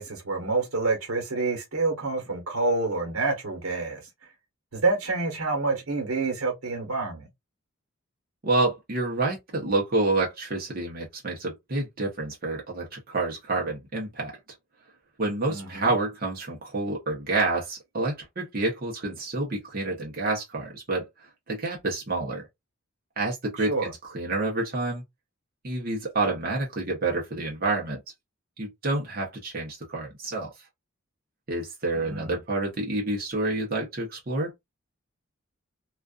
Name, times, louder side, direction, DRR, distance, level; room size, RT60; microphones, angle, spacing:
voice 1, 0.0-4.0 4.7-7.3 15.5-15.9 23.6-23.9 31.9-32.4, right 3 dB, 80° right, 1.1 m, -28 dB
voice 2, 8.4-14.3 15.2-22.5 23.2-25.0 25.6-28.0 28.6-30.5 31.5-34.5, right 2 dB, 40° right, 0.8 m, -28 dB
2.4 x 2.4 x 2.3 m
head